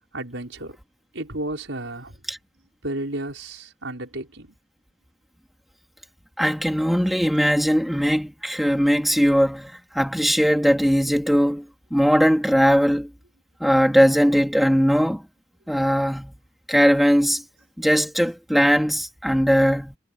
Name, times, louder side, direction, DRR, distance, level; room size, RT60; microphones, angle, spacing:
voice 1, 0.1-0.8 1.1-2.2 2.8-4.5, right 1 dB, 75° right, 5.2 m, -32 dB
voice 2, 6.4-11.6 11.9-13.1 13.6-15.2 15.7-16.3 16.7-17.4 17.8-20.0, equal, ahead, 2.2 m, -19 dB
head